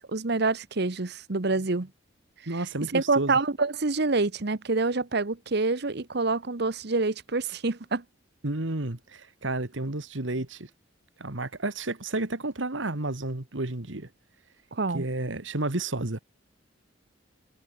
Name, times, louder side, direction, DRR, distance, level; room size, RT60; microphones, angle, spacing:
voice 1, 0.1-1.9 2.9-8.0 14.7-15.0, right 3 dB, 60° right, 1.1 m, -27 dB
voice 2, 2.5-3.4 8.4-10.7 11.2-14.1 14.9-16.2, right 2 dB, 80° right, 2.0 m, -31 dB
head